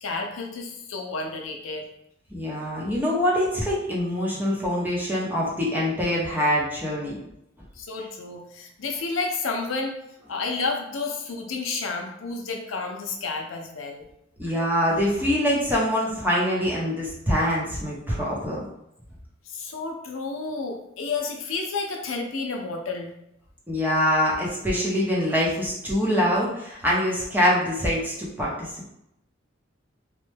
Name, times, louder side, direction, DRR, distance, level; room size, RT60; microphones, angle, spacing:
voice 1, 0.0-1.9 7.8-9.9 10.3-14.1 19.5-23.1, left 4 dB, 90° left, 2 dB, 0.5 m, -31 dB
voice 2, 2.3-7.2 14.4-18.6 23.7-28.9, equal, 10° right, -5 dB, 0.8 m, -24 dB
3.1 x 2.2 x 3.2 m, 0.80 s
head